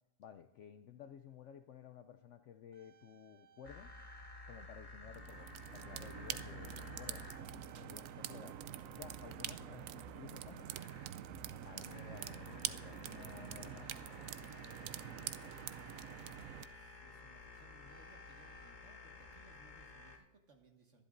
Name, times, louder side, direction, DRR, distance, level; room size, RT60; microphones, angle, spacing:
voice 1, 0.2-3.9 4.5-7.3 7.8-10.7 11.7-13.9, left 8 dB, 65° left, 9 dB, 0.7 m, -55 dB
sound 1, 1.3-1.4 2.3-4.9 5.1-5.4 6.6-9.3 9.6-10.0 10.5-13.2 14.4-16.7 17.9-18.7, right 8 dB, 85° right, 0.4 m, -65 dB
sound 2, 3.6-20.2, left 3 dB, 30° left, 1.4 m, -54 dB
voice 2, 4.5-4.9 15.3-21.0, right 3 dB, 50° right, 2 dB, 2.0 m, -65 dB
sound 3, 5.1-16.7, right 11 dB, 70° right, 0.8 m, -46 dB
23.5 x 11.0 x 2.6 m, 1.0 s
omnidirectional pair, 1.7 m